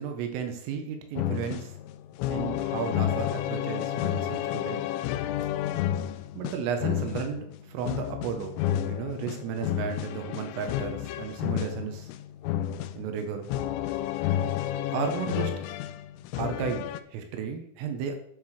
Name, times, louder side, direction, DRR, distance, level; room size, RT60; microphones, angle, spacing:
voice 1, 0.0-1.8 2.3-4.8 6.4-12.1 13.0-13.5 14.9-15.7 16.4-18.2, right 7 dB, 85° right, 5 dB, 3.8 m, -34 dB
sound 1, 1.2-17.0, left 11 dB, 90° left, 3.2 m, -31 dB
10.5 x 6.0 x 6.5 m, 0.69 s
omnidirectional pair, 5.8 m